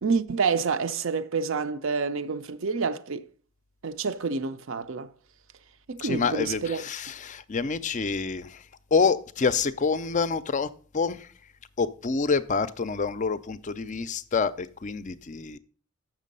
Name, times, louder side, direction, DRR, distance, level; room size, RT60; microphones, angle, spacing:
voice 1, 0.0-3.3 3.8-5.1 5.9-6.8, right 5 dB, 60° right, 0.5 m, -28 dB
voice 2, 6.0-8.6 8.9-10.7 10.9-11.3 11.8-15.6, left 5 dB, 35° left, 0.4 m, -27 dB
7.4 x 6.1 x 5.3 m
head